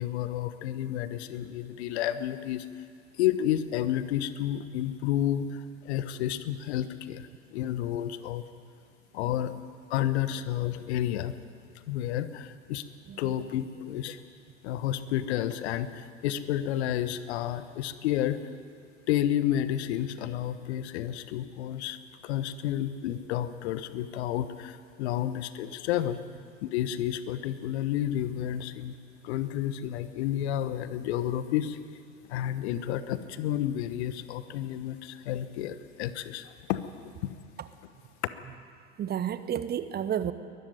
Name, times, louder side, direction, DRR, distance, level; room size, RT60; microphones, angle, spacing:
voice 1, 0.0-2.7 3.2-8.5 9.1-9.5 9.9-11.4 11.9-12.9 13.2-14.2 14.6-18.4 19.1-22.0 22.2-26.2 26.6-28.9 29.2-31.8 32.3-36.8 37.2-37.3, left 11 dB, 55° left, 13 dB, 1.2 m, -30 dB
voice 2, 39.0-40.3, right 9 dB, 25° right, 13 dB, 0.9 m, -31 dB
22.0 x 13.5 x 9.3 m, 2.2 s
figure-of-eight pair, 85°, 38 cm